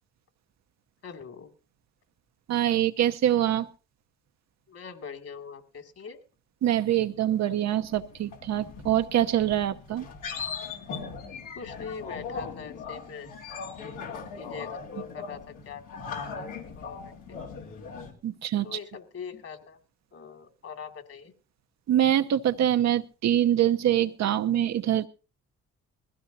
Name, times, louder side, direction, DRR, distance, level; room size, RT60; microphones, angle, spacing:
voice 1, 1.0-1.5 4.7-6.2 11.5-13.3 14.4-17.4 18.6-19.8 20.1-21.3, left 6 dB, 50° left, 6 dB, 2.5 m, -42 dB
voice 2, 2.5-3.7 6.6-10.1 18.2-18.7 21.9-25.1, right 11 dB, 60° right, 9 dB, 0.8 m, -24 dB
sound 1, 7.3-18.1, left 5 dB, 90° left, 3.2 m, -39 dB
20.5 x 15.5 x 2.7 m, 0.33 s
cardioid pair, 90°, 30 cm